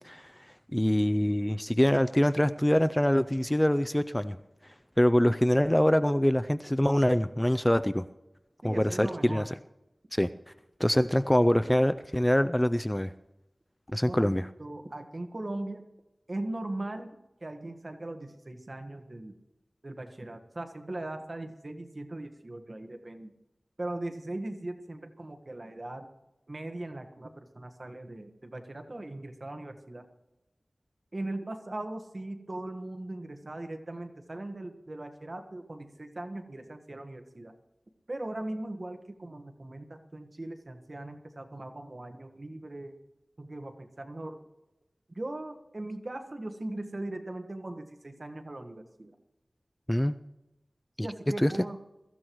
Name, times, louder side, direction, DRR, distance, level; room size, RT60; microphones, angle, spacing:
voice 1, 0.0-0.5 0.7-4.4 5.0-8.1 8.6-9.4 10.1-10.3 10.8-13.1 13.9-14.5 49.9-50.2 51.0-51.1 51.4-51.5, equal, 10° left, 11 dB, 0.4 m, -24 dB
voice 2, 8.6-9.5 14.0-15.8 16.3-17.1 17.4-19.4 19.8-23.3 23.8-26.1 26.5-30.0 31.1-37.5 38.1-43.0 43.4-44.4 45.1-49.1 51.0-51.8, right 1 dB, 50° right, 6 dB, 1.4 m, -39 dB
22.5 x 14.5 x 3.1 m, 0.99 s
wide cardioid pair, 65°, 0 cm